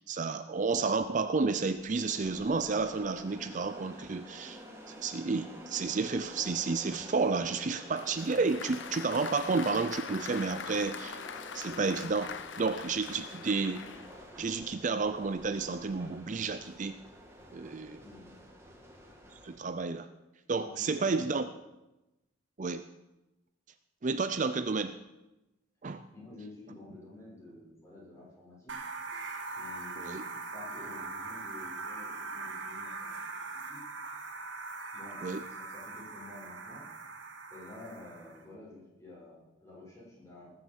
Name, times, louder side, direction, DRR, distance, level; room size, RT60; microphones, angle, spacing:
voice 1, 0.0-4.6 4.9-11.2 11.5-13.8 14.4-16.9 17.5-18.0 19.4-20.1 20.5-21.5 22.6-22.9 24.0-25.0 25.8-26.0 30.0-30.3 35.2-35.4, right 4 dB, 40° right, 11 dB, 0.5 m, -31 dB
sound 1, 1.5-19.6, equal, 15° right, 2.1 m, -50 dB
Applause, 8.0-14.3, left 6 dB, 65° left, 0.7 m, -43 dB
voice 2, 18.0-18.3 20.6-21.4 26.1-28.7 29.5-33.8 34.9-36.9 37.5-40.5, left 2 dB, 15° left, -5 dB, 6.2 m, -50 dB
sound 2, 28.7-38.4, right 3 dB, 70° right, 1.6 m, -41 dB
19.0 x 7.8 x 7.1 m, 0.99 s
head